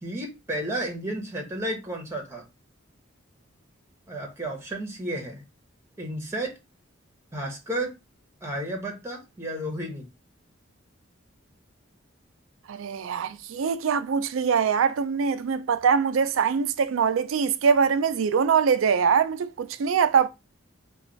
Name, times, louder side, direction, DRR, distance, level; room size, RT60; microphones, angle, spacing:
voice 1, 0.0-2.4 4.1-5.4 6.0-6.6 7.3-7.9 8.4-10.1, right 1 dB, 15° right, 0.9 m, -32 dB
voice 2, 12.7-20.3, right 6 dB, 85° right, 0.4 m, -23 dB
3.1 x 2.3 x 3.9 m
head